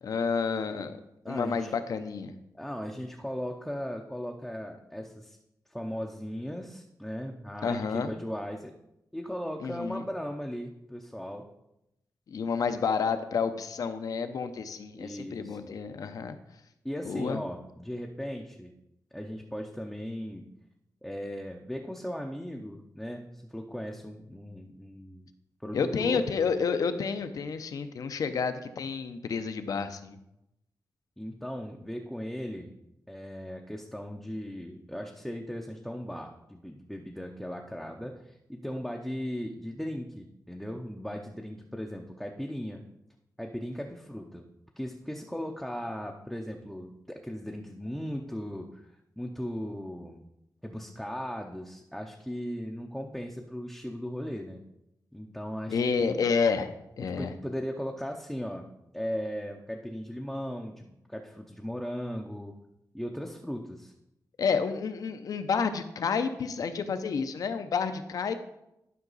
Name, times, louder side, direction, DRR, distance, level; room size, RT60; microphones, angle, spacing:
voice 1, 0.0-1.0 1.3-2.3 7.6-8.1 9.6-10.0 12.3-16.4 17.0-17.4 25.7-30.2 55.7-57.3 64.4-68.4, left 5 dB, 65° left, 9 dB, 0.6 m, -30 dB
voice 2, 1.2-1.7 2.5-5.4 5.7-8.7 9.1-11.5 15.0-15.7 16.8-18.7 19.1-20.4 21.0-25.3 25.6-26.2 31.2-32.7 33.1-42.8 43.4-44.4 44.8-50.2 50.6-54.6 55.1-56.1 57.0-58.7 58.9-62.5 62.9-63.9, equal, ahead, 1 dB, 0.5 m, -37 dB
11.0 x 5.7 x 4.0 m, 0.85 s
wide cardioid pair, 165°, 7 cm